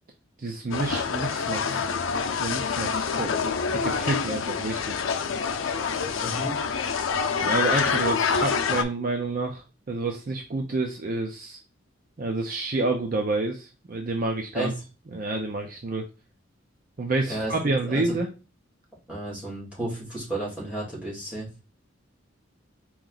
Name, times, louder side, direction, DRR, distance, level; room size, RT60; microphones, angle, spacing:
voice 1, 0.4-1.8 2.3-3.3 3.7-5.0 7.4-11.6 12.2-14.7 15.1-16.1 17.0-18.3, right 3 dB, 45° right, 3 dB, 0.6 m, -29 dB
sound 1, 0.7-8.8, left 6 dB, 80° left, 0.6 m, -26 dB
voice 2, 6.2-6.6 14.5-14.7 17.3-17.5 17.8-18.2 19.1-21.5, right 1 dB, 5° right, -5 dB, 2.4 m, -32 dB
4.5 x 3.1 x 3.9 m, 0.30 s
head